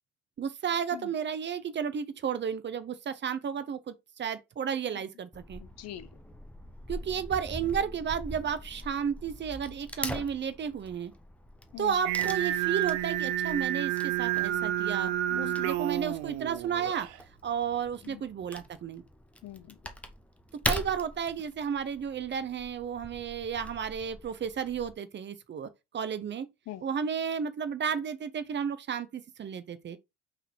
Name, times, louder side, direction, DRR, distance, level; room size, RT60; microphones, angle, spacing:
voice 1, 0.4-5.6 6.9-11.1 11.8-15.1 15.4-17.1 17.4-19.0 20.5-26.5 26.8-30.0, right 7 dB, 30° right, 0.9 m, -33 dB
Wood / Tearing, 5.3-24.9, left 1 dB, 5° left, 1.1 m, -42 dB
voice 2, 5.8-6.1 11.7-11.9 15.3-15.7 18.1-18.2 19.4-19.7 26.7-26.8, left 13 dB, 45° left, 0.9 m, -42 dB
Singing, 12.0-17.2, right 13 dB, 60° right, 0.7 m, -30 dB
5.7 x 3.6 x 4.5 m
figure-of-eight pair, 55°, 36 cm